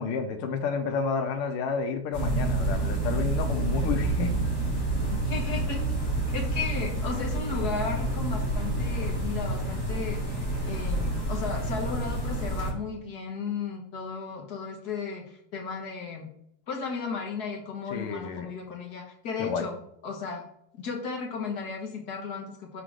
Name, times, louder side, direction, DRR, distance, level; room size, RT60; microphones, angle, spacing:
voice 1, 0.0-4.3 17.9-18.5 19.4-19.7, left 5 dB, 90° left, 6 dB, 1.6 m, -30 dB
sound 1, 2.1-12.7, right 2 dB, 40° left, 2.1 m, -28 dB
voice 2, 5.1-5.8 6.3-16.3 16.7-19.7 20.0-20.4 20.7-22.8, left 5 dB, 55° left, 1 dB, 1.4 m, -35 dB
6.1 x 3.8 x 4.7 m, 0.74 s
omnidirectional pair, 2.4 m